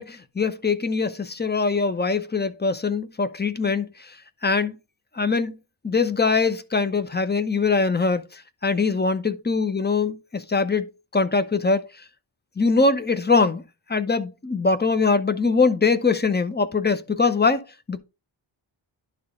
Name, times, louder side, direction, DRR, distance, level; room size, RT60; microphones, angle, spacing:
voice 1, 0.0-4.1 4.4-4.8 5.1-5.6 5.8-11.8 12.6-13.6 13.9-17.6 17.9-18.0, left 4 dB, 20° left, 0.6 m, -22 dB
11.0 x 4.0 x 3.6 m
wide cardioid pair, 115°, 49 cm